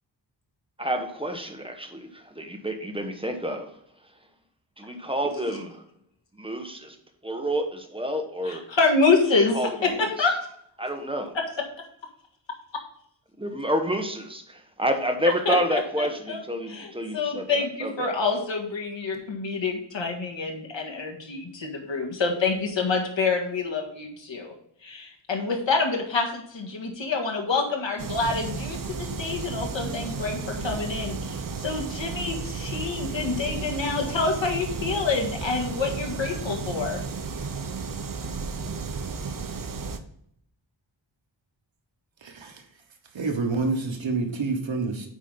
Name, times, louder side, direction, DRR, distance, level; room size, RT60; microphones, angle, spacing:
voice 1, 0.8-4.3 4.8-5.8 6.3-7.0 7.2-8.6 9.3-10.4 10.8-11.3 13.4-18.1, equal, 10° right, 1.0 m, -29 dB
voice 2, 8.8-9.6 9.8-10.3 15.5-16.4 16.7-16.9 17.1-24.5 24.8-37.0, left 4 dB, 75° left, 1.8 m, -27 dB
sound 1, 28.0-40.0, right 4 dB, 45° right, 0.7 m, -33 dB
voice 3, 42.2-42.6 43.1-45.1, right 3 dB, 80° right, 1.4 m, -28 dB
8.3 x 5.1 x 3.9 m
wide cardioid pair, 125°, 45 cm